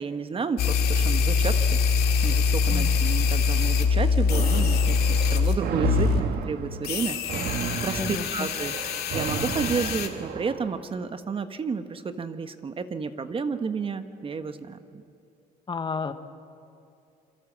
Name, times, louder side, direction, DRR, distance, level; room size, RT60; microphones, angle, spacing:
voice 1, 0.0-15.0, right 5 dB, 30° right, 9 dB, 1.2 m, -32 dB
sound 1, 0.6-5.6 5.8-6.2 6.8-10.1, left 5 dB, 70° left, 2.3 m, -23 dB
sound 2, 4.3-10.7, right 6 dB, 70° right, 2.1 m, -32 dB
voice 2, 8.0-8.5 15.7-16.1, left 5 dB, 30° left, 9 dB, 1.3 m, -31 dB
27.5 x 23.0 x 7.4 m, 2.7 s
cardioid pair, 110°, 17 cm